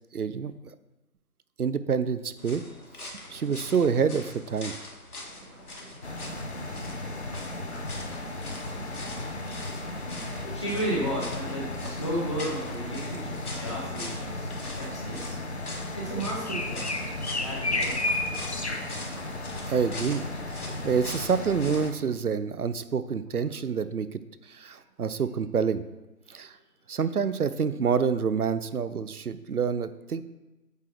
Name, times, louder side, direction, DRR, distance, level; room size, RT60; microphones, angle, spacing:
voice 1, 0.1-0.5 1.6-2.6 3.0-4.7 19.7-20.2 20.5-24.2 24.5-25.8 26.3-26.5 26.9-30.2, right 6 dB, 70° right, 13 dB, 0.7 m, -27 dB
sound 1, 2.4-21.9, left 2 dB, 65° left, 2.0 m, -43 dB
voice 2, 5.1-15.4 15.9-17.9, right 1 dB, 20° left, -5 dB, 1.4 m, -36 dB
sound 2, 6.0-21.9, left 2 dB, 45° left, 0.8 m, -34 dB
8.2 x 5.0 x 4.5 m, 1.1 s
figure-of-eight pair, 170°, 47 cm